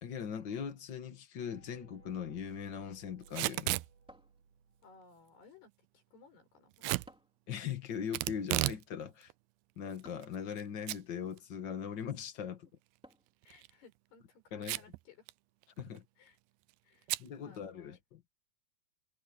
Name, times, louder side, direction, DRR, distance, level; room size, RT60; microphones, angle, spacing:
voice 1, 0.0-3.8 7.5-9.3 9.8-12.7 14.5-14.8 15.8-16.0 17.2-18.2, left 8 dB, 65° left, 1.1 m, -40 dB
sound 1, 1.4-5.2, right 5 dB, 55° right, 6.0 m, -60 dB
Packing tape duct tape / Tearing, 3.3-3.9 6.8-7.1 8.1-8.8 9.2-9.3 10.0-10.6 10.9-11.0 11.4-11.5 13.4-13.7 14.6-15.0 15.3-15.4 15.6-16.0 17.1-17.3, right 21 dB, 80° right, 2.4 m, -33 dB
sound 2, 4.1-5.0 7.1-7.5 10.0-10.5 13.0-13.5, equal, ahead, 2.6 m, -59 dB
voice 2, 4.8-7.1 13.4-15.3 16.2-16.4 16.8-18.0, left 5 dB, 90° left, 8.0 m, -60 dB
omnidirectional pair, 4.5 m